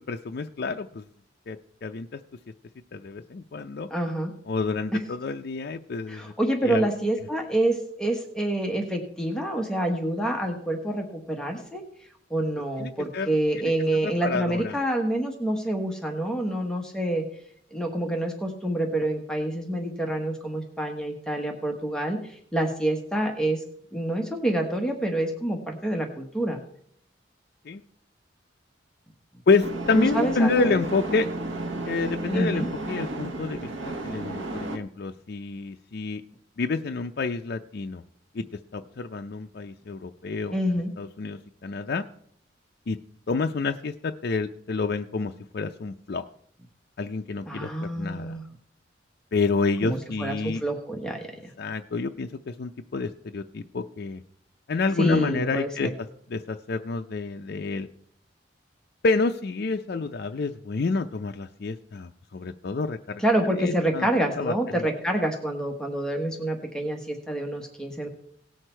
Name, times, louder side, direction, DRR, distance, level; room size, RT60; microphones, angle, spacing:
voice 1, 0.1-1.0 1.5-2.2 2.9-3.9 4.5-6.3 6.6-6.9 12.8-13.3 13.6-13.7 14.0-14.8 27.7-27.8 29.5-31.3 31.9-33.7 34.0-36.2 36.6-38.0 38.4-38.5 38.7-40.6 41.0-42.0 42.9-43.0 43.3-46.2 47.0-47.7 48.0-48.3 49.3-50.6 51.6-54.2 54.7-55.9 56.3-57.9 59.0-63.2 63.6-64.1 64.4-64.8, left 4 dB, 55° left, 4 dB, 0.4 m, -28 dB
voice 2, 3.9-4.3 4.9-5.0 6.1-11.8 12.3-17.2 17.7-23.6 23.9-26.6 29.9-30.8 32.3-32.7 40.5-40.9 47.5-48.4 49.8-51.5 55.0-55.9 63.2-68.1, right 1 dB, 5° left, 2 dB, 1.1 m, -27 dB
sound 1, 29.6-34.8, right 2 dB, 90° right, 1.1 m, -33 dB
17.5 x 6.5 x 4.4 m, 0.66 s
head